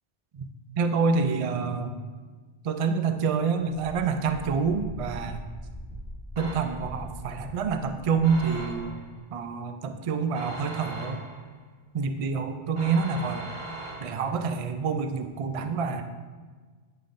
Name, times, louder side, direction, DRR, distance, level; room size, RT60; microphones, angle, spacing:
voice 1, 0.8-2.0 2.6-5.4 6.4-8.9 9.3-11.2 11.9-13.4 14.0-16.0, right 5 dB, 55° right, 7 dB, 0.4 m, -27 dB
Wind, 3.7-9.0, equal, 10° right, 2.0 m, -42 dB
sound 1, 6.4-7.0 8.2-9.1 10.3-11.5 12.8-14.4, right 1 dB, 75° right, 2.2 m, -40 dB
9.8 x 5.5 x 2.5 m, 1.4 s
omnidirectional pair, 1.1 m